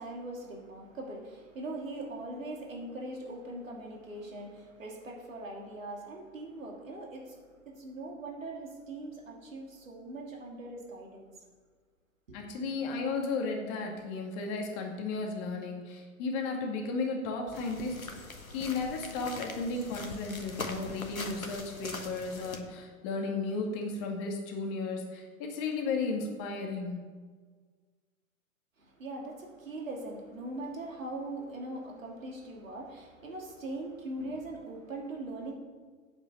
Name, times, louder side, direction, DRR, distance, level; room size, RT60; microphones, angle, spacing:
voice 1, 0.0-11.3 12.3-12.5 28.8-35.5, right 2 dB, 70° right, 0 dB, 2.8 m, -41 dB
voice 2, 12.3-18.1 18.5-27.0, left 3 dB, 35° left, 1 dB, 2.3 m, -34 dB
sound 1, 17.5-22.6, left 2 dB, 85° left, 1.4 m, -42 dB
8.4 x 7.3 x 7.9 m, 1.5 s
figure-of-eight pair, 105°, 41 cm